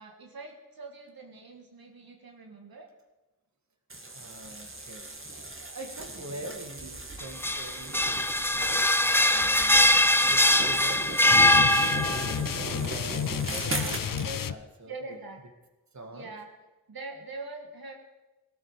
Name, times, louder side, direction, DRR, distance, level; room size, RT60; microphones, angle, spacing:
voice 1, 0.0-2.9 13.6-14.0 14.9-15.4 16.1-16.5 16.9-17.9, right 3 dB, 85° right, 2 dB, 1.9 m, -43 dB
sound 1, 3.9-14.3, right 2 dB, 35° right, 2.1 m, -39 dB
voice 2, 4.1-11.8 12.4-15.2 15.9-16.3, right 2 dB, 50° right, 5 dB, 2.1 m, -44 dB
sound 2, 7.2-12.4, left 1 dB, 5° left, 0.7 m, -22 dB
sound 3, 11.3-14.5, left 8 dB, 70° left, 0.6 m, -32 dB
18.5 x 12.5 x 5.0 m, 1.1 s
wide cardioid pair, 60°, 35 cm